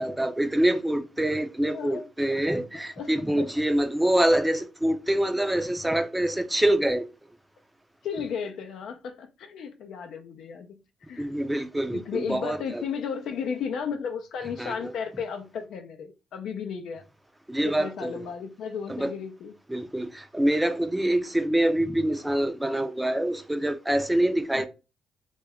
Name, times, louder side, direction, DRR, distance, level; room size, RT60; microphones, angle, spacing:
voice 1, 0.0-7.0 11.2-12.8 14.6-14.9 17.5-18.3 18.9-19.1 19.7-24.7, right 1 dB, 10° right, 0.4 m, -25 dB
voice 2, 1.7-2.1 2.7-3.5 8.0-10.8 11.1-11.3 11.9-17.0 17.6-19.5 24.5-24.7, left 6 dB, 75° left, 0.4 m, -34 dB
2.2 x 2.1 x 3.4 m
cardioid pair, 90°, 0 cm